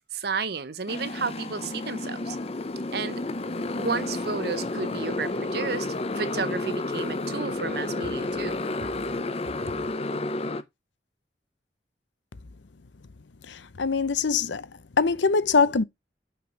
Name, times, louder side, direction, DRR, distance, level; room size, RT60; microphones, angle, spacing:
voice 1, 0.1-2.4 2.9-3.2 3.7-8.6, right 5 dB, 60° right, 0.8 m, -32 dB
Motorcycle, 0.9-10.6, left 2 dB, 35° left, 0.7 m, -31 dB
voice 2, 13.5-14.7 15.0-15.8, left 5 dB, 85° left, 0.7 m, -23 dB
6.1 x 5.8 x 5.9 m
head